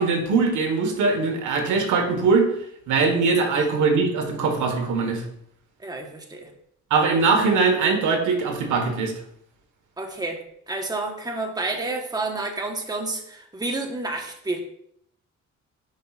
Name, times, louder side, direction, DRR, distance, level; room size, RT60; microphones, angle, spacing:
voice 1, 0.0-2.5 2.9-5.2 6.9-9.1, right 4 dB, 75° right, 4 dB, 1.5 m, -21 dB
voice 2, 5.8-6.5 10.0-10.4 10.7-14.6, right 2 dB, 15° right, 2 dB, 1.2 m, -29 dB
10.0 x 5.4 x 2.5 m, 0.71 s
cardioid pair, 90°, 30 cm